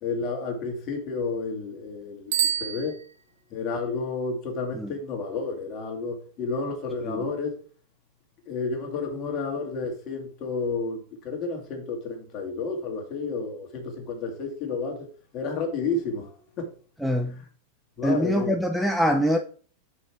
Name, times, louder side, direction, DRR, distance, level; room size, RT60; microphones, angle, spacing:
voice 1, 0.0-3.0 3.5-7.6 8.5-11.0 11.2-15.1 15.3-16.7 18.0-18.6, left 4 dB, 40° left, 2.2 m, -31 dB
Bicycle bell, 2.3-3.6, right 10 dB, 75° right, 1.0 m, -29 dB
voice 2, 17.0-17.4 18.0-19.4, equal, ahead, 0.6 m, -24 dB
5.5 x 5.2 x 4.7 m
supercardioid pair, 130°, 0 cm